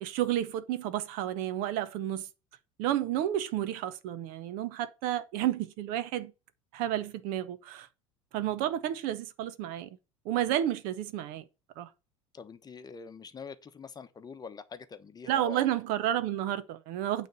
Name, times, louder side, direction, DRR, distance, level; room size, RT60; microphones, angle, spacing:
voice 1, 0.0-2.3 2.8-6.3 6.7-7.9 8.3-9.9 10.2-11.4 11.8-11.9 15.3-17.3, right 12 dB, 55° right, 0.8 m, -31 dB
voice 2, 12.3-15.7, left 5 dB, 25° left, 1.0 m, -45 dB
9.1 x 3.4 x 6.8 m
figure-of-eight pair, 75°, 17 cm